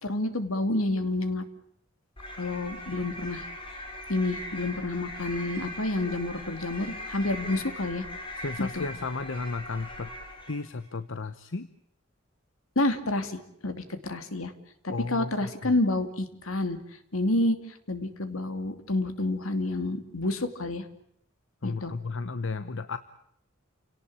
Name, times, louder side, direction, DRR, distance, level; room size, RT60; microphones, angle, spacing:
voice 1, 0.0-1.4 2.4-3.4 4.1-8.1 8.6-8.9 12.8-14.5 14.8-16.8 17.1-17.6 17.9-20.8 21.6-22.0, left 2 dB, 85° left, 9 dB, 2.7 m, -29 dB
sound 1, 2.2-10.7, left 1 dB, 25° left, 4.5 m, -40 dB
voice 2, 8.4-10.1 10.5-11.7 14.9-15.7 21.6-23.0, left 3 dB, 65° left, 12 dB, 1.0 m, -34 dB
29.5 x 18.0 x 8.7 m, 0.73 s
head